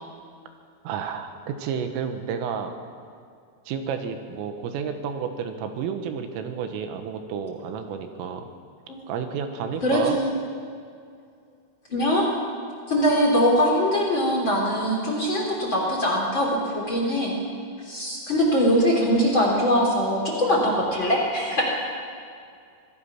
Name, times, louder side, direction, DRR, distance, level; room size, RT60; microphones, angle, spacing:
voice 1, 0.9-2.8 3.7-8.5 9.1-10.2, right 7 dB, 85° right, 6 dB, 3.9 m, -31 dB
voice 2, 9.8-10.3 11.9-12.3 12.9-17.4 17.8-21.6, equal, 30° left, -1 dB, 2.9 m, -22 dB
25.0 x 17.5 x 6.0 m, 2.3 s
omnidirectional pair, 5.8 m